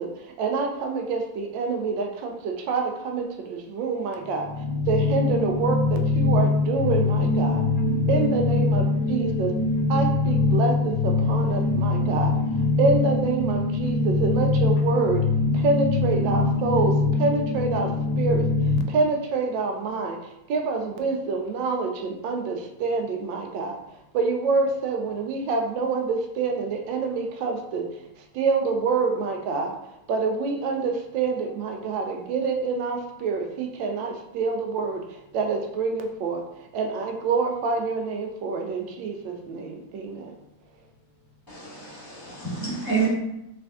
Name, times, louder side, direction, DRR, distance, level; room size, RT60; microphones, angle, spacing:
voice 1, 0.0-4.5 4.9-7.6 8.1-9.5 9.9-12.3 12.8-15.2 15.6-16.9 17.2-17.9 18.2-18.5 18.9-23.8 24.1-27.9 28.3-29.7 30.1-36.4 36.7-40.3, right 4 dB, 85° right, 1.4 m, -26 dB
voice 2, 4.2-19.0, left 3 dB, 75° left, 1.2 m, -23 dB
voice 3, 41.5-43.1, right 5 dB, 15° right, 1.0 m, -28 dB
3.4 x 3.4 x 3.4 m
omnidirectional pair, 2.0 m